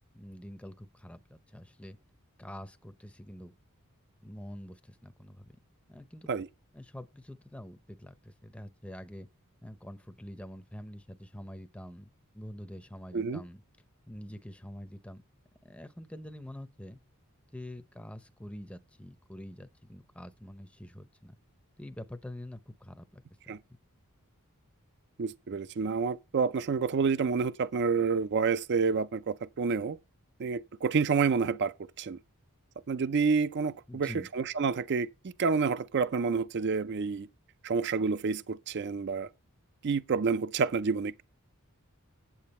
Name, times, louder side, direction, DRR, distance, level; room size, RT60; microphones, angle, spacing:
voice 1, 0.1-2.0 2.4-3.5 4.2-5.5 5.9-6.3 6.7-9.3 9.6-13.6 14.1-15.2 15.6-17.0 17.5-21.3 21.8-23.6 33.9-34.3, left 1 dB, 5° left, 0.6 m, -46 dB
voice 2, 25.2-30.0 30.4-32.2 32.9-35.1 35.4-37.3 37.6-39.3 39.8-41.2, right 5 dB, 50° right, 0.4 m, -29 dB
8.7 x 8.3 x 4.2 m
head